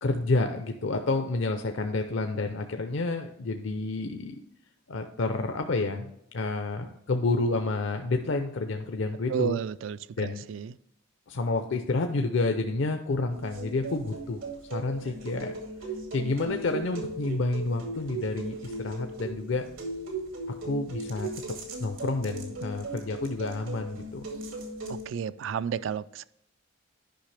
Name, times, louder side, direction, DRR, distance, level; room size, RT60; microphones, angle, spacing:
voice 1, 0.0-4.4 4.9-9.6 10.2-10.4 11.3-14.4 14.7-15.5 16.1-19.6 20.6-21.3 21.8-24.3, left 3 dB, 70° left, 0.6 m, -29 dB
voice 2, 9.3-10.7 24.9-26.2, right 7 dB, 70° right, 0.3 m, -32 dB
sound 1, 13.3-25.1, right 2 dB, 85° right, 2.2 m, -38 dB
10.5 x 5.7 x 3.3 m
head